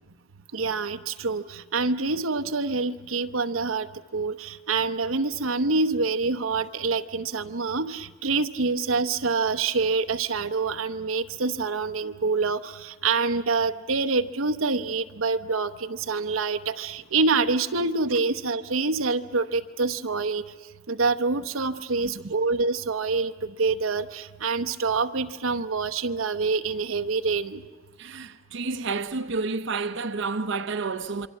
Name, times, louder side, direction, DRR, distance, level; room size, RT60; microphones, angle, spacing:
voice 1, 0.5-20.4 20.9-27.6, right 4 dB, 90° right, 1.0 m, -26 dB
voice 2, 28.0-31.3, right 4 dB, 65° right, 0.8 m, -30 dB
27.0 x 24.0 x 8.5 m
head